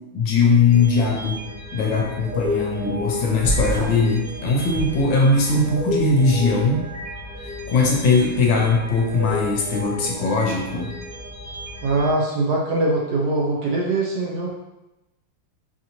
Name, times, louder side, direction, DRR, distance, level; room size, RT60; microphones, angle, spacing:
voice 1, 0.1-1.4 1.7-6.9 7.7-10.9, left 3 dB, 70° left, 0 dB, 1.2 m, -20 dB
sound 1, 0.7-12.1, left 2 dB, 15° left, 1.3 m, -32 dB
sound 2, 3.4-4.1 4.7-5.6, right 2 dB, 55° left, 0.4 m, -27 dB
voice 2, 11.8-14.5, right 2 dB, 70° right, -2 dB, 0.9 m, -22 dB
4.9 x 2.7 x 2.8 m, 0.96 s
omnidirectional pair, 2.3 m